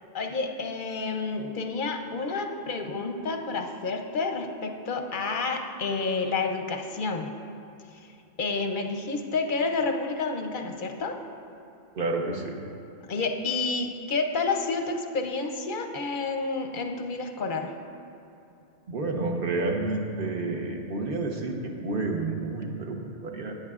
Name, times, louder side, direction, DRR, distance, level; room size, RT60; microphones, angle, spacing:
voice 1, 0.1-7.3 7.9-8.1 8.4-11.2 13.0-17.7, left 4 dB, 50° left, 4 dB, 0.7 m, -29 dB
voice 2, 11.9-12.6 18.9-23.5, right 3 dB, 45° right, 1 dB, 1.1 m, -30 dB
15.5 x 9.5 x 2.4 m, 2.8 s
omnidirectional pair, 1.3 m